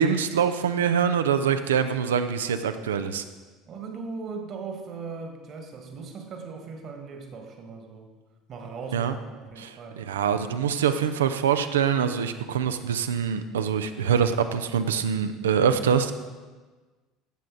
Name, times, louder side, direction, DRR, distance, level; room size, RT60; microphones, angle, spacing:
voice 1, 0.0-3.2 8.9-9.2 9.6-16.1, right 7 dB, 75° right, 10 dB, 0.6 m, -24 dB
voice 2, 3.7-8.1 8.5-10.0, right 4 dB, 45° right, 4 dB, 1.6 m, -38 dB
14.0 x 7.6 x 3.9 m, 1.3 s
figure-of-eight pair, 65°, 0 cm